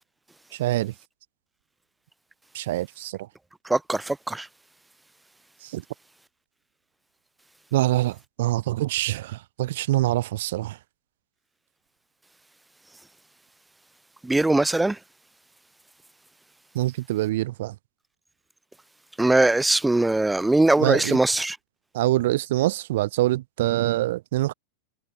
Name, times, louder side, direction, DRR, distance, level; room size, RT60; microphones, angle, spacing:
voice 1, 0.5-0.9 2.5-3.2 5.6-5.8 7.7-10.8 16.7-17.7 20.8-21.2 21.9-24.5, right 16 dB, 55° right, 3.2 m, -25 dB
voice 2, 3.7-4.4 14.2-14.9 19.2-21.5, right 2 dB, 5° right, 1.8 m, -21 dB
figure-of-eight pair, 90°, 0 cm